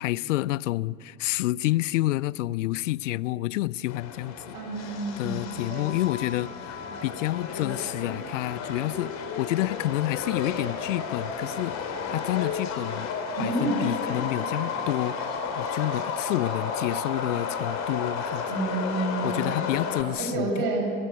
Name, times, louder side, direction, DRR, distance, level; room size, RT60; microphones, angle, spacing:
voice 1, 0.0-4.6 5.2-13.1 13.4-15.3 15.6-18.4 19.2-20.5, left 17 dB, 60° left, 0.6 m, -29 dB
Subway metro underground, 3.9-20.0, left 5 dB, 40° left, 3.6 m, -32 dB
voice 2, 4.5-5.9 13.4-13.8 18.5-19.4 20.2-21.0, right 2 dB, 50° right, 7.0 m, -29 dB
28.0 x 14.5 x 9.4 m
figure-of-eight pair, 85°, 43 cm